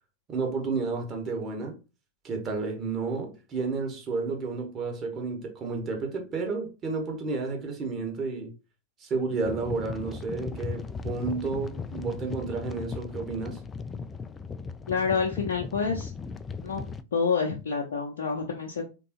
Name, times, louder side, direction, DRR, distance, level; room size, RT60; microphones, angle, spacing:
voice 1, 0.3-1.8 2.2-8.5 9.0-13.6, right 4 dB, 30° right, 1.2 m, -31 dB
sound 1, 9.4-17.0, left 5 dB, 20° left, 0.3 m, -37 dB
voice 2, 14.9-16.1 16.6-16.8 17.1-18.9, left 5 dB, 60° left, 0.7 m, -28 dB
3.8 x 3.4 x 2.9 m
figure-of-eight pair, 90°, 0 cm